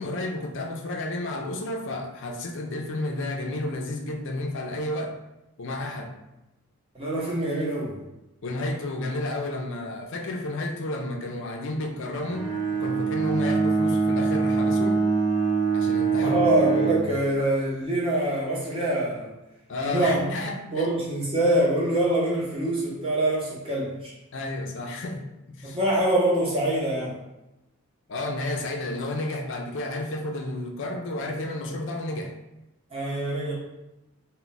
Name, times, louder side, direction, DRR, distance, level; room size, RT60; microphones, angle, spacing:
voice 1, 0.0-5.1 5.6-6.1 8.4-12.5 12.7-15.0 15.7-16.4 19.7-20.9 24.3-25.2 25.5-25.8 28.1-32.3, left 2 dB, 55° left, 2 dB, 0.4 m, -31 dB
voice 2, 6.9-8.0 16.2-19.3 19.8-20.3 20.7-24.1 25.6-27.2 32.9-33.5, right 1 dB, 25° right, -5 dB, 0.7 m, -25 dB
Bowed string instrument, 12.3-17.2, right 5 dB, 90° right, 0.6 m, -24 dB
2.3 x 2.1 x 3.9 m, 0.96 s
head